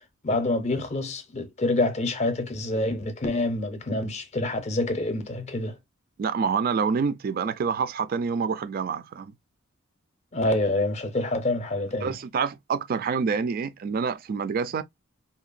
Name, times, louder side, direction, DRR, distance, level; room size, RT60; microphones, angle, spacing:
voice 1, 0.2-5.8 10.3-12.1, left 2 dB, 35° left, 0.5 m, -27 dB
voice 2, 6.2-9.3 12.0-14.8, right 5 dB, 45° right, 0.3 m, -27 dB
2.8 x 2.2 x 2.4 m
head